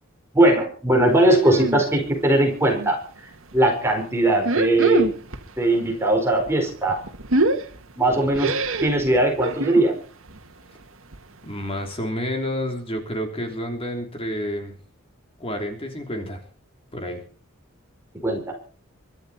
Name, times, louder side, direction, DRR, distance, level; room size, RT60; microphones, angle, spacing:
voice 1, 0.3-3.0 3.5-5.1 5.6-7.0 8.0-10.0 18.2-18.5, right 1 dB, 10° right, 1 dB, 4.8 m, -20 dB
sound 1, 1.4-1.8 2.2-3.0 3.4-3.6 4.3-5.5 5.8-9.9 10.3-10.5 10.8-10.9 11.1-11.2 11.7-11.8, right 2 dB, 75° right, 1.9 m, -25 dB
voice 2, 11.4-14.7 15.4-16.4 16.9-17.2, equal, 25° left, 4 dB, 3.4 m, -29 dB
24.0 x 12.5 x 4.3 m, 0.42 s
head